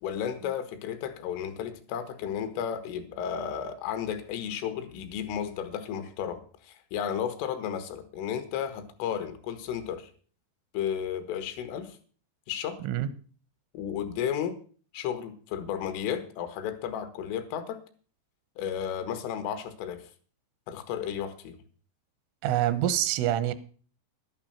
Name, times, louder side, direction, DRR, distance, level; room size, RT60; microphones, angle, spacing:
voice 1, 0.0-10.1 10.7-12.0 12.5-12.8 13.7-14.6 14.9-17.8 18.6-20.1 20.7-21.6, left 8 dB, 85° left, 4.0 m, -33 dB
voice 2, 22.4-23.5, right 12 dB, 85° right, 3.5 m, -26 dB
12.0 x 11.0 x 5.8 m
omnidirectional pair, 5.6 m